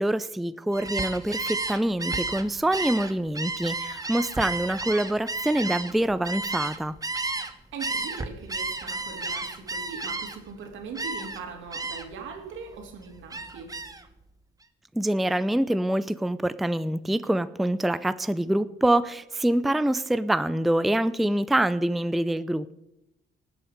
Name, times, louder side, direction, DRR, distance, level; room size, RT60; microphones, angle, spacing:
voice 1, 0.0-7.0 14.9-22.8, right 1 dB, ahead, 0.4 m, -25 dB
Gull seagull, 0.7-7.5 7.8-10.5 10.9-11.4 11.7-12.2 12.6-14.0, right 3 dB, 15° right, 1.2 m, -32 dB
voice 2, 7.7-13.8, right 5 dB, 80° right, 2.6 m, -40 dB
19.0 x 7.8 x 5.1 m
cardioid pair, 90°, 20 cm